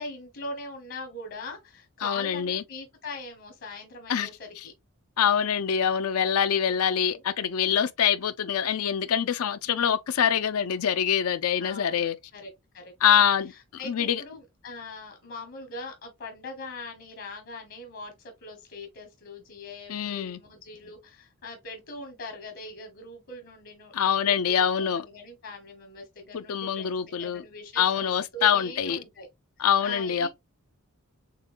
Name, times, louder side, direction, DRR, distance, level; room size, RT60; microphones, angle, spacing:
voice 1, 0.0-4.7 6.7-7.2 9.7-9.9 11.6-13.2 13.8-18.1 18.4-29.3 29.8-30.3, left 2 dB, 65° left, 1.1 m, -42 dB
voice 2, 2.0-2.6 4.1-4.3 5.2-12.2 13.0-14.2 19.9-20.4 23.9-25.0 26.3-27.4 27.8-29.0 29.6-30.3, left 8 dB, 80° left, 0.5 m, -25 dB
6.6 x 2.2 x 2.4 m
head